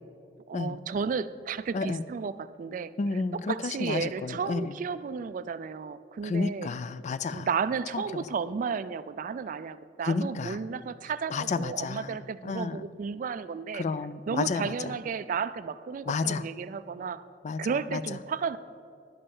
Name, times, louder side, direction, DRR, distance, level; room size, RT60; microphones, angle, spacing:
voice 1, 0.5-6.7 7.3-13.8 14.3-17.2 17.6-18.6, right 6 dB, 45° right, 14 dB, 0.3 m, -33 dB
voice 2, 3.0-4.7 6.2-7.5 7.9-8.0 10.1-10.6 11.3-12.1 12.4-12.8 13.7-14.7 16.1-16.4 17.4-17.6 17.9-18.0, left 4 dB, 40° left, 15 dB, 0.3 m, -30 dB
11.0 x 5.5 x 7.1 m, 2.4 s
head